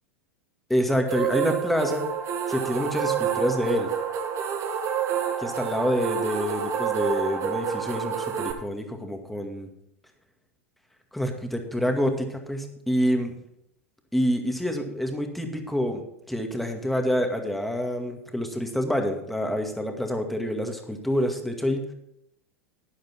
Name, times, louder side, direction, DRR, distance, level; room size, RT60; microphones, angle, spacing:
voice 1, 0.7-2.1 2.5-3.9 5.4-9.7 11.1-13.3 14.1-16.0 16.3-21.9, equal, ahead, 4 dB, 2.1 m, -27 dB
sound 1, 1.1-8.5, right 8 dB, 40° right, 1.8 m, -28 dB
11.5 x 10.5 x 4.5 m, 0.77 s
figure-of-eight pair, 90°, 8 cm